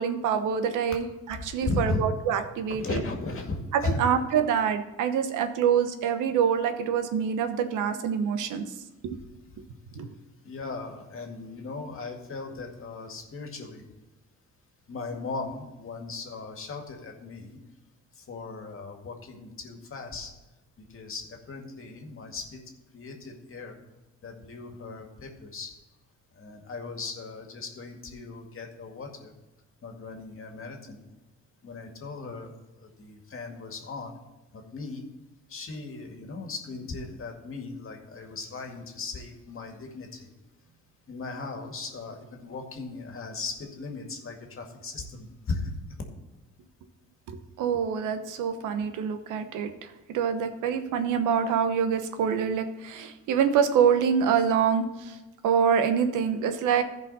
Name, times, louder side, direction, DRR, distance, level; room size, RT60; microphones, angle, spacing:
voice 1, 0.0-3.0 3.7-8.6 9.0-9.2 10.0-10.1 47.3-49.7 50.1-55.2 55.4-56.8, right 7 dB, 90° right, 8 dB, 1.0 m, -26 dB
voice 2, 1.6-2.0 2.7-4.0 10.4-13.8 14.9-17.6 18.2-20.3 20.8-22.6 22.9-23.8 24.2-25.7 26.4-29.3 29.8-31.0 31.6-32.5 32.8-34.2 34.5-35.0 35.5-40.3 41.1-45.7, left 3 dB, 45° left, 3 dB, 2.0 m, -37 dB
14.5 x 5.2 x 4.2 m, 1.1 s
cardioid pair, 90°, 30 cm